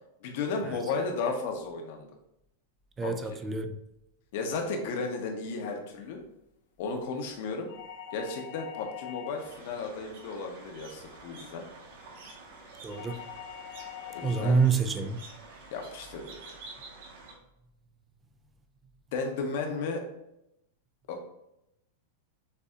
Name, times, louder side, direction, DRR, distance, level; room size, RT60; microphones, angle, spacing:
voice 1, 0.2-2.1 3.0-3.4 4.3-6.2 6.8-7.7 8.1-11.6 14.1-14.6 15.7-16.6 19.1-20.0 21.1-21.3, left 4 dB, 55° left, 0.9 m, -34 dB
voice 2, 3.0-3.7 12.8-13.2 14.2-15.2, right 4 dB, 15° right, 0.4 m, -27 dB
sound 1, 7.7-9.6 12.9-14.7, left 10 dB, 80° left, 0.7 m, -43 dB
sound 2, 9.4-17.3, right 3 dB, 65° right, 1.6 m, -49 dB
6.7 x 2.8 x 2.4 m
supercardioid pair, 155°, 0 cm